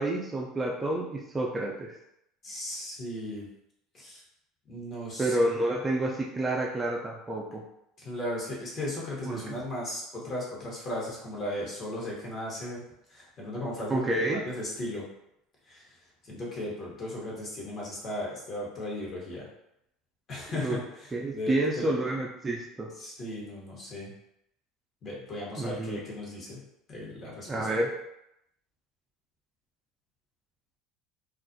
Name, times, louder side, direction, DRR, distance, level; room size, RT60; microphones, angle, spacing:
voice 1, 0.0-1.9 5.2-7.6 9.3-9.4 13.9-14.4 20.5-20.8 21.1-22.9 25.6-26.0 27.5-27.9, right 1 dB, 20° right, -1 dB, 0.4 m, -29 dB
voice 2, 2.4-3.4 3.9-4.2 4.7-5.3 8.0-12.8 13.1-15.1 15.7-15.9 16.2-19.5 20.3-21.9 23.0-24.1 25.0-26.6 26.9-27.7, left 1 dB, 40° left, -4 dB, 1.0 m, -36 dB
2.3 x 2.0 x 2.6 m, 0.80 s
hypercardioid pair, 80°, 0 cm